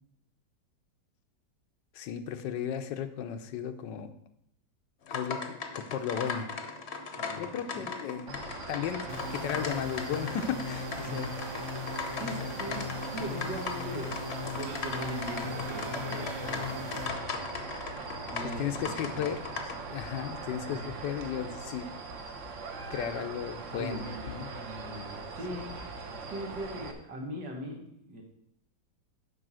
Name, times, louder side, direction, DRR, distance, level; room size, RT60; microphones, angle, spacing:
voice 1, 1.9-4.1 5.1-6.5 7.4-11.4 12.1-12.5 13.2-13.4 16.4-17.0 18.6-19.4 19.9-21.9 22.9-24.5, left 8 dB, 85° left, 9 dB, 1.4 m, -35 dB
sound 1, 5.1-19.8, left 4 dB, 50° left, 0.9 m, -39 dB
voice 2, 7.1-7.9 11.0-11.3 12.2-17.2 18.2-19.3 20.6-20.8 23.7-24.3 24.5-25.7 26.2-28.2, right 1 dB, 80° right, 1 dB, 2.4 m, -41 dB
sound 2, 8.3-26.9, right 3 dB, 50° right, 1.1 m, -41 dB
sound 3, 9.1-17.1, left 3 dB, 20° right, 0.8 m, -39 dB
7.6 x 5.6 x 6.2 m, 0.73 s
omnidirectional pair, 1.9 m